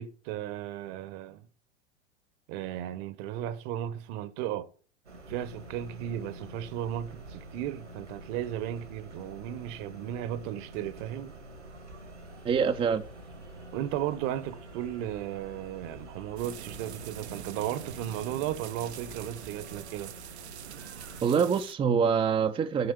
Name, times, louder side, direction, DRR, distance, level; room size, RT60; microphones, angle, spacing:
voice 1, 0.0-1.4 2.5-4.7 5.3-11.3 13.7-20.1, right 11 dB, 45° right, 1.1 m, -35 dB
sound 1, 5.0-21.2, right 1 dB, 85° right, 2.7 m, -47 dB
voice 2, 12.4-13.0 21.2-22.9, right 6 dB, 15° right, 0.6 m, -25 dB
sound 2, 16.4-21.7, right 10 dB, 70° right, 0.8 m, -44 dB
8.1 x 6.4 x 8.0 m
figure-of-eight pair, 90°, 34 cm